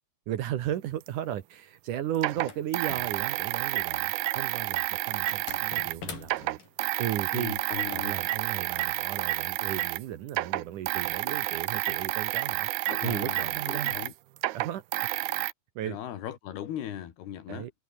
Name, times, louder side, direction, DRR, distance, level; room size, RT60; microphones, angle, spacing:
voice 1, 0.3-6.6 7.0-7.6 7.9-12.7 13.0-14.0 14.5-15.1 15.8-16.0 17.5-17.7, right 12 dB, 65° right, 2.3 m, -35 dB
sound 1, 1.1-1.2 2.2-6.0 6.2-10.0 10.3-15.5, right 18 dB, 90° right, 2.8 m, -30 dB
sound 2, 2.3-3.7 5.3-6.7, left 6 dB, 60° left, 5.5 m, -43 dB
voice 2, 7.3-8.1 12.9-14.1 15.8-17.7, left 10 dB, 80° left, 4.1 m, -38 dB
omnidirectional pair, 4.5 m